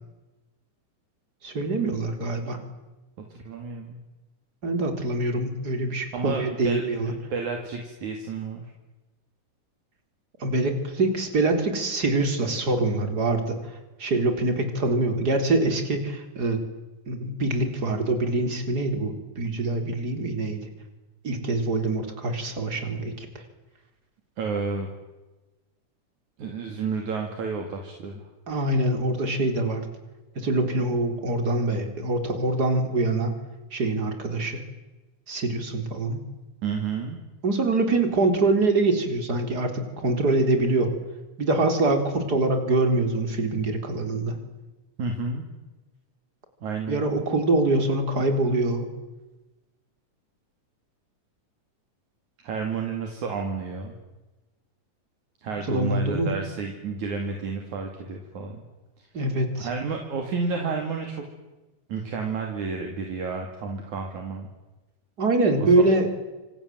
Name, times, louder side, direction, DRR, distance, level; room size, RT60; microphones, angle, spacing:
voice 1, 1.4-2.6 4.6-7.1 10.4-13.6 14.0-16.6 17.1-20.6 21.2-23.3 28.5-29.9 30.4-33.3 33.7-34.6 35.3-36.2 37.4-40.9 41.4-44.4 46.9-48.9 55.7-56.4 59.1-59.7 65.2-66.1, right 2 dB, 30° right, 6 dB, 4.2 m, -24 dB
voice 2, 3.2-4.0 6.1-8.7 24.4-24.9 26.4-28.3 36.6-37.2 45.0-45.4 46.6-47.0 52.4-53.9 55.4-58.6 59.6-61.3 61.9-64.5 65.6-65.8, right 4 dB, 65° right, 3 dB, 4.0 m, -31 dB
28.5 x 26.0 x 7.7 m, 1.1 s
omnidirectional pair, 3.7 m